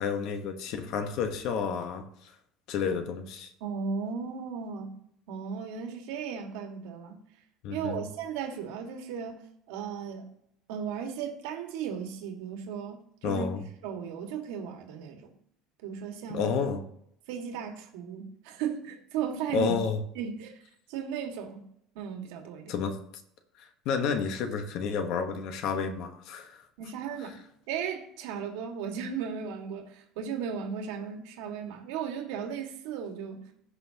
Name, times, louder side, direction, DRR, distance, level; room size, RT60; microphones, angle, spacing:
voice 1, 0.0-2.3 2.7-3.5 7.6-8.0 13.2-13.7 16.3-16.8 19.5-20.0 22.7-23.0 23.6-26.6, left 6 dB, 50° left, 7 dB, 1.1 m, -30 dB
voice 2, 3.6-5.0 5.3-7.2 7.7-9.4 9.7-10.3 10.7-13.5 13.8-15.3 15.8-16.5 17.3-19.8 20.2-20.6 20.9-21.7 22.0-22.7 26.8-33.5, right 7 dB, 80° right, 3 dB, 1.8 m, -36 dB
16.0 x 5.6 x 2.9 m, 0.72 s
cardioid pair, 180°, 0 cm